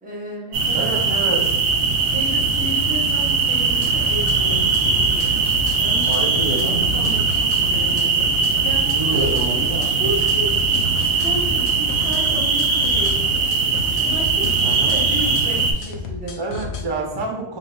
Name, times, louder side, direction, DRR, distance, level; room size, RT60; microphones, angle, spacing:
voice 1, 0.0-1.0 2.1-5.3 5.8-9.4 9.6-10.7 11.0-13.6 14.0-16.4, right 1 dB, 10° right, -4 dB, 0.9 m, -33 dB
sound 1, 0.5-15.7, right 4 dB, 60° right, 0.8 m, -20 dB
voice 2, 0.7-1.5 2.6-2.7 6.1-6.8 8.9-9.9 14.6-15.0 16.3-17.6, right 3 dB, 35° right, 0 dB, 0.5 m, -28 dB
sound 2, 3.6-16.8, left 3 dB, 70° left, 0.8 m, -32 dB
3.9 x 3.1 x 2.2 m, 0.82 s
omnidirectional pair, 1.2 m